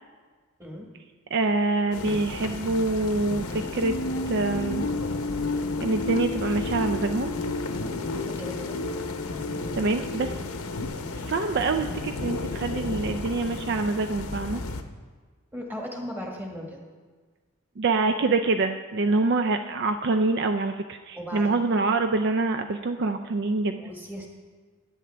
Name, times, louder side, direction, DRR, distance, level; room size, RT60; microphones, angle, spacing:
voice 1, 1.3-3.9 4.3-4.8 5.8-7.3 9.7-10.3 11.2-14.6 17.8-23.8, right 3 dB, 50° right, 7 dB, 0.4 m, -25 dB
sound 1, 1.9-14.8, left 3 dB, 85° left, 0.8 m, -34 dB
sound 2, 3.8-10.9, left 2 dB, 60° left, 0.5 m, -32 dB
voice 2, 8.3-8.8 15.5-16.8 19.1-19.2 21.1-21.7 23.8-24.3, equal, 10° right, 0 dB, 1.5 m, -37 dB
16.0 x 10.0 x 3.4 m, 1.5 s
head